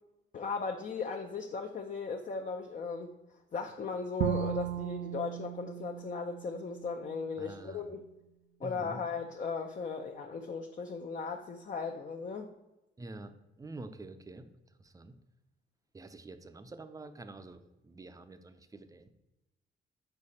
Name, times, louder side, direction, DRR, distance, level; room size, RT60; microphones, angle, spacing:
voice 1, 0.3-3.1 3.5-8.1 8.6-12.5, left 4 dB, 40° left, 3 dB, 0.6 m, -37 dB
Bowed string instrument, 4.2-7.3, right 11 dB, 85° right, 0.4 m, -36 dB
voice 2, 7.4-7.9 8.6-9.0 13.0-14.5 14.8-15.2 15.9-19.1, right 2 dB, 15° right, 10 dB, 0.6 m, -47 dB
6.7 x 4.8 x 4.2 m, 0.96 s
cardioid pair, 90°, 20 cm